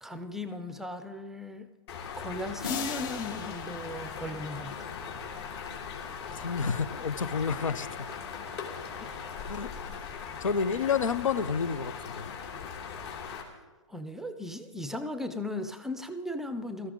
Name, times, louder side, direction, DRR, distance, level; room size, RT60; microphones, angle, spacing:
voice 1, 0.0-1.7 2.2-4.9 9.0-9.1 13.9-16.9, left 1 dB, ahead, 10 dB, 0.5 m, -37 dB
sound 1, 1.9-13.4, left 6 dB, 55° left, 3.0 m, -39 dB
sound 2, 2.6-5.4, left 8 dB, 40° left, 1.3 m, -40 dB
voice 2, 6.3-8.1 9.5-10.1 10.4-12.3, left 6 dB, 85° left, 16 dB, 0.8 m, -30 dB
17.0 x 13.5 x 3.8 m, 1.2 s
hypercardioid pair, 140°, 16 cm